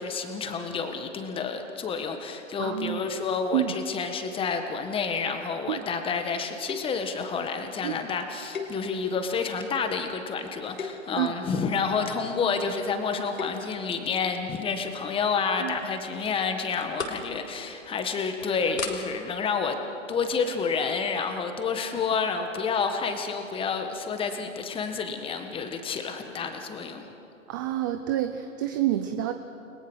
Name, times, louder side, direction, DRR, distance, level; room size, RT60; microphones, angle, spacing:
voice 1, 0.0-19.8 20.1-27.1, left 5 dB, 15° left, 6 dB, 1.7 m, -29 dB
voice 2, 2.6-3.1 3.5-3.7 5.7-5.8 7.8-8.0 11.2-11.3 15.6-15.7 27.5-29.3, right 13 dB, 15° right, 9 dB, 0.4 m, -28 dB
sound 1, 6.7-7.1 8.5-9.3 9.8-10.1 10.7-11.2 13.1-13.8 15.2-15.5 15.8-15.9 16.2-16.4 16.7-17.3 17.7-17.9 18.4-18.5 18.8-18.9, left 5 dB, 85° left, 3.8 m, -36 dB
29.5 x 21.0 x 6.4 m, 3.0 s
hypercardioid pair, 140°, 40 cm